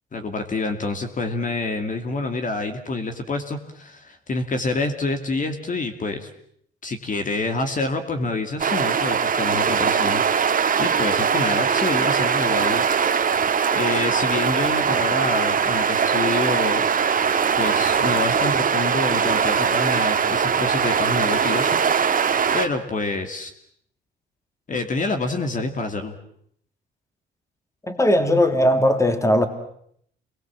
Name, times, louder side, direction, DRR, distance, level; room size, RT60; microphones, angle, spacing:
voice 1, 0.1-6.3 6.8-10.2 10.8-13.1 13.7-16.9 17.6-22.2 22.5-23.5 24.7-26.2, left 3 dB, 40° left, 6 dB, 2.6 m, -27 dB
sound 1, 8.6-22.7, right 6 dB, 45° right, 2.0 m, -21 dB
voice 2, 27.9-29.5, left 1 dB, 15° left, 8 dB, 2.9 m, -18 dB
28.0 x 21.5 x 7.6 m, 0.67 s
cardioid pair, 90°, 20 cm